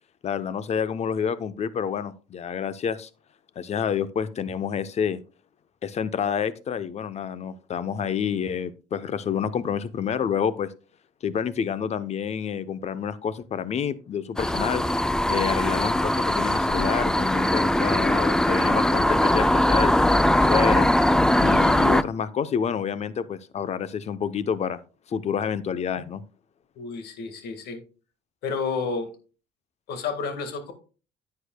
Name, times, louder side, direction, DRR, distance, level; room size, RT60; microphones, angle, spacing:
voice 1, 0.2-3.1 3.6-5.2 5.8-10.7 11.2-14.8 15.3-20.9 21.4-24.8 25.1-26.2, left 7 dB, 40° left, 14 dB, 0.7 m, -28 dB
sound 1, 14.4-22.0, left 1 dB, 5° left, 0.3 m, -21 dB
voice 2, 26.8-27.8 28.4-29.1 29.9-30.7, left 5 dB, 75° left, 8 dB, 1.7 m, -30 dB
9.9 x 8.4 x 2.2 m, 0.36 s
cardioid pair, 110°, 17 cm